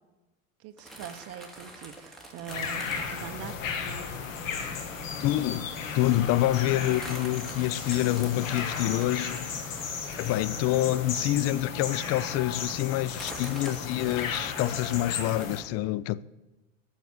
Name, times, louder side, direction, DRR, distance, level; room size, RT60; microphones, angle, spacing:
voice 1, 0.6-3.6, right 10 dB, 40° right, 0.8 m, -42 dB
sound 1, 0.8-4.8 5.3-5.4 5.7-5.8 6.0-6.3 6.8-11.8 12.3-12.4 13.1-15.5, right 1 dB, ahead, 2.6 m, -47 dB
sound 2, 2.5-15.6, left 5 dB, 75° left, 1.8 m, -35 dB
voice 2, 5.2-5.7 5.9-9.6 10.2-16.2, left 15 dB, 40° left, 0.4 m, -27 dB
9.3 x 7.3 x 8.0 m
hypercardioid pair, 85°, 40 cm